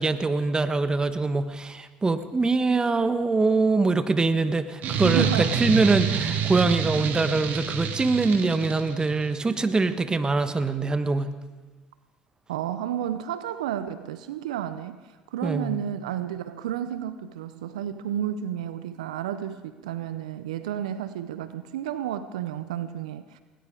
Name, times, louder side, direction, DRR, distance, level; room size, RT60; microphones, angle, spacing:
voice 1, 0.0-11.3 15.4-15.8, right 3 dB, 20° right, 10 dB, 1.2 m, -23 dB
sound 1, 4.8-9.3, right 7 dB, 55° right, 1.9 m, -28 dB
voice 2, 5.0-5.5 12.5-15.0 15.3-23.4, right 10 dB, 85° right, 12 dB, 0.6 m, -31 dB
19.5 x 18.5 x 3.8 m, 1.3 s
hypercardioid pair, 70°, 4 cm